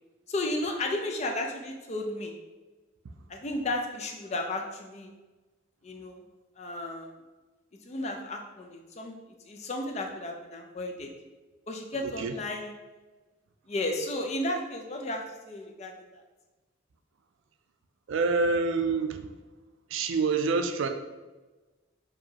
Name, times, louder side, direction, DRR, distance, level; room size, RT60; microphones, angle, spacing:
voice 1, 0.3-2.3 3.3-5.1 5.8-6.2 6.6-7.1 7.9-9.2 9.4-11.1 11.7-12.7 13.7-16.2, left 1 dB, 35° left, 3 dB, 0.4 m, -33 dB
voice 2, 11.9-12.3 18.1-19.3 19.9-20.9, right 4 dB, 70° right, 6 dB, 0.4 m, -27 dB
4.7 x 2.7 x 2.8 m, 1.2 s
head